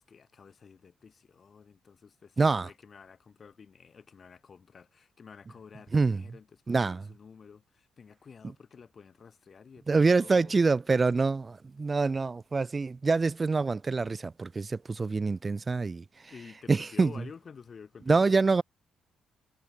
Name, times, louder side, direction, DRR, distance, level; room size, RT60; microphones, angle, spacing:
voice 1, 0.0-10.7 16.3-18.3, left 6 dB, 45° left, 0.9 m, -51 dB
voice 2, 2.4-2.7 5.9-6.2 6.7-7.1 9.9-16.0 16.7-17.2 18.1-18.6, right 4 dB, 30° right, 0.3 m, -26 dB
cardioid pair, 90°, 0 cm